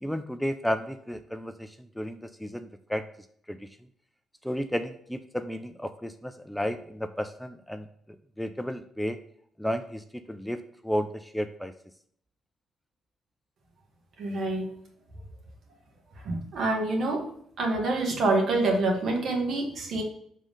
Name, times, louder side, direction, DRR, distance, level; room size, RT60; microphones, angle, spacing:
voice 1, 0.0-3.0 3.5-3.7 4.4-7.9 8.4-9.2 9.6-11.7, equal, 5° left, 8 dB, 0.4 m, -33 dB
voice 2, 14.2-14.7 16.2-17.2 17.6-20.0, right 2 dB, 65° right, 1 dB, 1.7 m, -26 dB
5.3 x 3.7 x 5.3 m, 0.65 s
cardioid pair, 90°, 0 cm